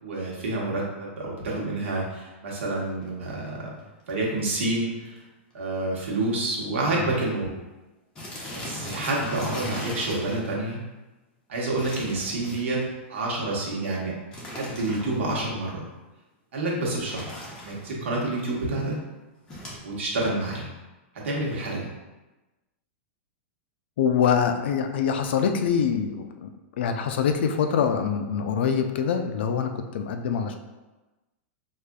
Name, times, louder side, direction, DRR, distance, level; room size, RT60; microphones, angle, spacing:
voice 1, 0.0-3.7 4.1-5.2 5.5-7.5 8.5-10.8 11.5-12.8 13.1-14.1 14.5-15.9 16.5-17.3 17.6-18.9 19.8-20.7 21.2-21.9, right 2 dB, 70° right, -4 dB, 1.1 m, -28 dB
sound 1, 2.9-3.1 3.8-3.9 4.1-4.2 4.4-4.7 5.1-5.2 5.5-5.6 6.4-6.5 6.7-6.9 7.2-7.3 8.2-10.4 11.8-12.9 14.3-15.3 16.9-17.9 19.5-19.8, equal, 10° left, 0.6 m, -38 dB
voice 2, 24.0-26.5 26.8-30.5, left 7 dB, 60° left, 6 dB, 0.3 m, -24 dB
4.8 x 2.4 x 2.3 m, 1.1 s
supercardioid pair, 180°, 7 cm